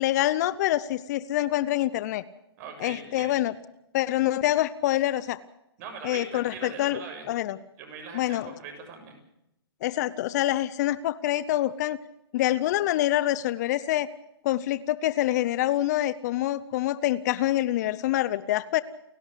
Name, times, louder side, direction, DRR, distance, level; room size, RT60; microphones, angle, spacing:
voice 1, 0.0-2.2 2.8-3.5 3.9-5.4 6.0-7.0 7.3-7.6 8.1-8.5 9.8-12.0 12.3-14.1 14.4-18.8, left 14 dB, 40° left, 17 dB, 0.8 m, -26 dB
voice 2, 2.6-3.4 5.8-7.3 7.8-9.2, right 5 dB, 40° right, 4 dB, 7.5 m, -41 dB
29.5 x 11.5 x 8.3 m, 0.85 s
hypercardioid pair, 130°, 14 cm